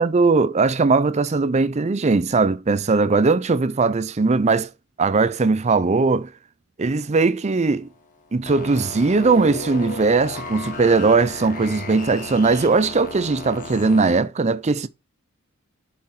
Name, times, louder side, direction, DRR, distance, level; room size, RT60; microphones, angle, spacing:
voice 1, 0.0-4.7 5.0-6.3 6.8-7.9 8.3-14.9, right 4 dB, 30° right, 0.5 m, -19 dB
sound 1, 7.0-14.2, left 3 dB, 35° left, 1.6 m, -34 dB
7.5 x 4.2 x 4.4 m
head